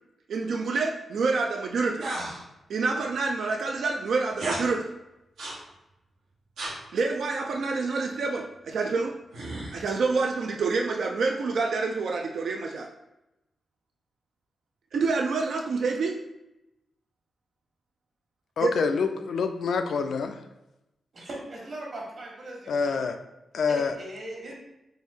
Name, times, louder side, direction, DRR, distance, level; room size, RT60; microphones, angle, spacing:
voice 1, 0.3-2.1 2.7-4.9 6.9-9.2 9.7-12.9 14.9-16.2 18.6-18.7, right 4 dB, 70° right, 2 dB, 0.3 m, -27 dB
sound 1, 2.0-2.4 4.3-4.7 5.4-5.6 6.6-6.8 9.3-10.0, right 2 dB, 90° right, 1.2 m, -33 dB
voice 2, 18.6-20.4 22.7-23.2 23.5-23.9, left 5 dB, 70° left, 7 dB, 0.3 m, -26 dB
voice 3, 21.1-23.0 23.7-24.5, right 1 dB, 50° right, -2 dB, 1.3 m, -39 dB
4.3 x 2.7 x 3.5 m, 0.94 s
wide cardioid pair, 150°, 0 cm